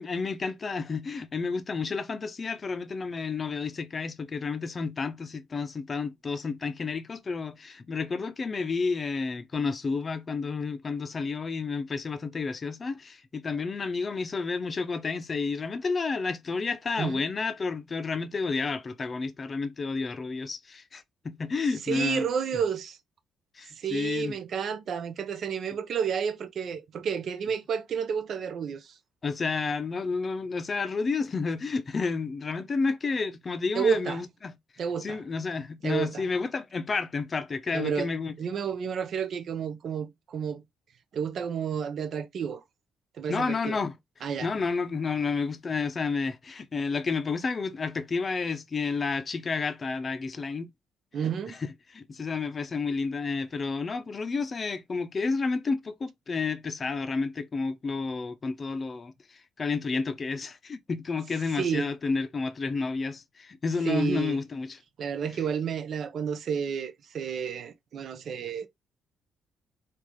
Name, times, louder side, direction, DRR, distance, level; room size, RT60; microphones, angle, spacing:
voice 1, 0.0-22.3 23.5-24.4 29.2-34.5 35.0-38.4 43.3-43.9 44.4-50.7 51.5-51.6 51.9-64.8, left 4 dB, 35° left, 0.5 m, -31 dB
voice 2, 21.9-23.0 23.7-29.0 33.7-34.2 34.8-35.2 35.8-36.2 37.7-38.1 38.4-40.6 41.1-42.6 43.2-43.8 44.2-44.5 51.1-51.6 61.5-61.9 63.9-64.4 65.0-68.7, right 7 dB, 60° right, 0.6 m, -30 dB
3.8 x 2.4 x 3.0 m
cardioid pair, 80°, 0 cm